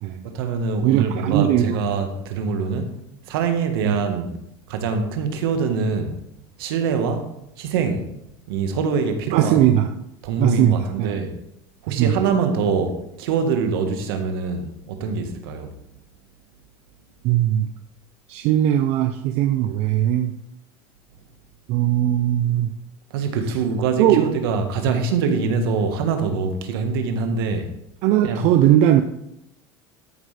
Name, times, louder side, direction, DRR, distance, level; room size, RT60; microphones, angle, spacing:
voice 1, 0.2-2.9 3.3-4.4 4.7-6.2 6.6-7.3 7.6-8.0 8.5-9.6 10.2-11.3 11.8-15.7 23.1-27.7 28.2-28.4, right 5 dB, 80° right, 6 dB, 1.4 m, -24 dB
voice 2, 0.8-1.8 3.8-4.0 9.3-9.9 10.4-11.2 12.0-12.1 17.2-17.7 18.3-20.4 21.7-22.7 24.0-24.3 28.0-29.0, right 12 dB, 60° right, 7 dB, 0.6 m, -19 dB
12.5 x 5.4 x 3.3 m, 0.80 s
supercardioid pair, 105°, 12 cm